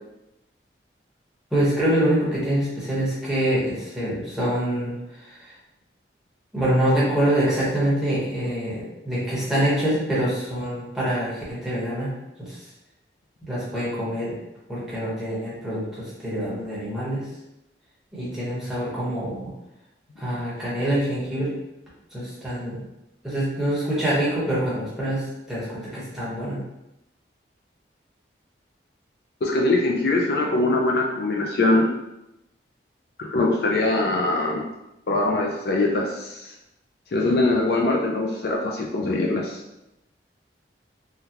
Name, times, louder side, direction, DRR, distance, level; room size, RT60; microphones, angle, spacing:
voice 1, 1.5-5.5 6.5-12.1 12.4-12.6 13.4-14.4 14.7-17.2 18.1-19.5 20.2-21.5 22.1-22.8 23.2-26.6, right 1 dB, ahead, -9 dB, 1.1 m, -25 dB
voice 2, 29.4-31.9 33.2-34.6 35.1-36.4 37.1-39.6, left 2 dB, 55° left, 0 dB, 0.4 m, -22 dB
3.7 x 2.2 x 2.8 m, 0.91 s
head